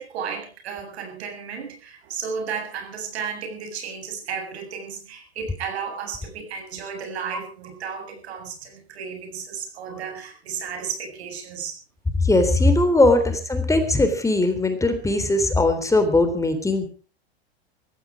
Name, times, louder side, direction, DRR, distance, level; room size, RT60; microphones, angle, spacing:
voice 1, 0.0-11.8, right 6 dB, 80° right, 5 dB, 7.6 m, -33 dB
voice 2, 12.2-16.9, left 2 dB, 10° left, 8 dB, 3.5 m, -19 dB
18.0 x 15.5 x 4.9 m, 0.38 s
hypercardioid pair, 110°, 32 cm